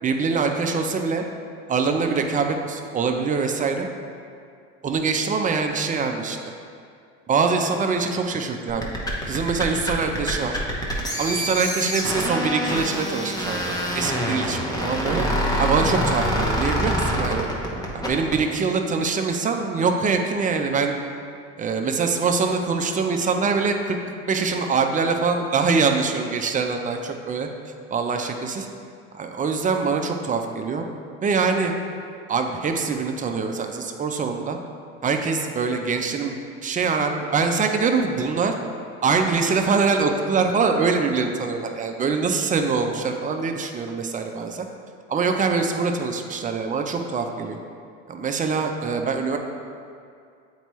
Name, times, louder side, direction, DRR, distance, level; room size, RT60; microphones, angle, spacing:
voice 1, 0.0-1.2 1.7-3.9 4.8-6.4 7.3-8.9 9.2-10.6 11.2-15.2 15.6-17.5 17.9-21.0 21.6-24.0 24.3-27.5 27.9-28.7 29.1-30.8 31.2-31.7 32.3-34.6 35.0-38.5 39.0-44.7 45.1-47.6 48.1-49.4, right 4 dB, 25° right, 4 dB, 0.5 m, -24 dB
sound 1, 8.7-18.4, equal, 10° left, 1.0 m, -25 dB
7.9 x 4.5 x 3.1 m, 2.3 s
supercardioid pair, 105°, 33 cm